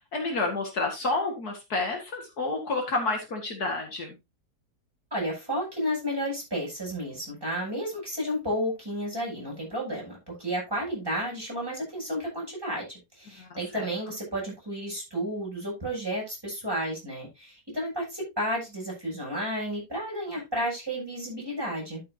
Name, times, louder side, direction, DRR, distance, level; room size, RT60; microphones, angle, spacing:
voice 1, 0.1-4.2 13.4-13.9, left 3 dB, 65° left, 2 dB, 2.5 m, -30 dB
voice 2, 5.1-12.9 13.1-22.0, equal, 15° right, -4 dB, 7.5 m, -32 dB
12.5 x 7.3 x 2.8 m, 0.23 s
omnidirectional pair, 1.8 m